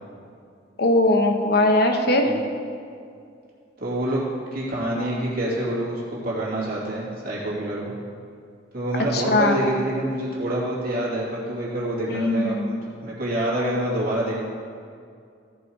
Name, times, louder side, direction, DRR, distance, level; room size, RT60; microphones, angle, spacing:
voice 1, 0.8-2.3 9.1-9.6 12.1-12.7, left 2 dB, 60° left, 3 dB, 1.0 m, -20 dB
voice 2, 3.8-4.2 4.5-7.9 8.7-14.4, right 1 dB, 55° right, -6 dB, 2.7 m, -26 dB
14.0 x 5.5 x 4.7 m, 2.3 s
head